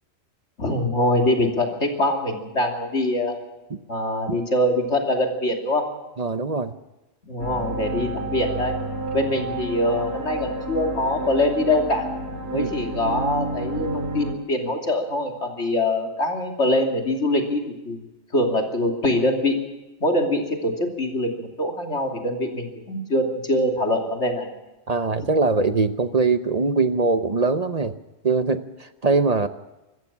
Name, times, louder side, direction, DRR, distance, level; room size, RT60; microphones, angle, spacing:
voice 1, 0.6-3.4 3.9-5.9 7.2-8.8 9.1-12.1 12.5-18.0 18.3-19.6 20.0-24.5, left 1 dB, 85° left, 2 dB, 3.2 m, -23 dB
voice 2, 6.2-6.7 12.5-12.7 24.9-27.9 28.2-29.5, right 3 dB, 40° right, 10 dB, 0.9 m, -22 dB
sound 1, 7.4-14.3, right 2 dB, 70° right, 2.4 m, -30 dB
25.5 x 14.5 x 7.4 m, 1.0 s
omnidirectional pair, 1.2 m